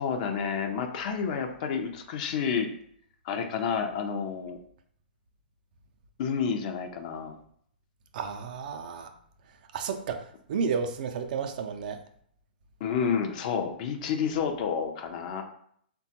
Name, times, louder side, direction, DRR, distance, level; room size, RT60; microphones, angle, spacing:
voice 1, 0.0-2.7 3.2-4.6 6.2-7.4 12.8-15.4, left 6 dB, 45° left, 6 dB, 0.5 m, -30 dB
voice 2, 8.1-9.1 9.7-10.2 10.5-12.0, right 6 dB, 55° right, 6 dB, 0.4 m, -31 dB
3.6 x 2.2 x 2.8 m, 0.65 s
figure-of-eight pair, 115°, 6 cm